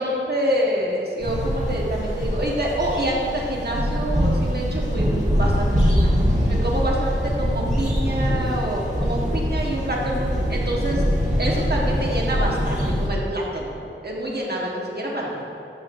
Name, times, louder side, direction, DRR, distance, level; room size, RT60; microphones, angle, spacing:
voice 1, 0.0-6.0 6.5-15.5, right 1 dB, 50° right, -3 dB, 1.2 m, -27 dB
sound 1, 1.2-13.1, equal, 35° right, 1.5 m, -23 dB
9.8 x 5.7 x 2.6 m, 2.6 s
wide cardioid pair, 45°, 21 cm